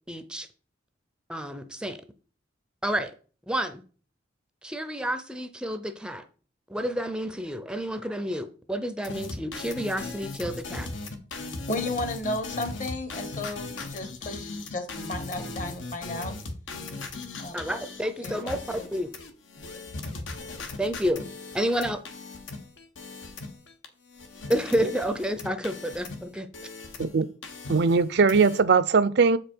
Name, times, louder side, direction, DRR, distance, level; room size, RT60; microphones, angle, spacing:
voice 1, 0.1-0.5 1.3-2.0 2.8-3.1 3.5-3.8 4.6-6.2 6.7-10.9 17.5-19.1 20.8-21.2 21.5-22.0 24.5-26.5, equal, 5° right, 0.5 m, -29 dB
sound 1, 9.0-23.8 24.1-27.1 27.4-28.6, left 3 dB, 85° left, 1.2 m, -38 dB
voice 2, 11.7-16.3 17.4-17.6 18.2-18.9 19.6-19.7, left 2 dB, 45° left, 1.0 m, -34 dB
voice 3, 27.7-29.4, right 5 dB, 60° right, 0.5 m, -20 dB
7.2 x 5.1 x 4.5 m
head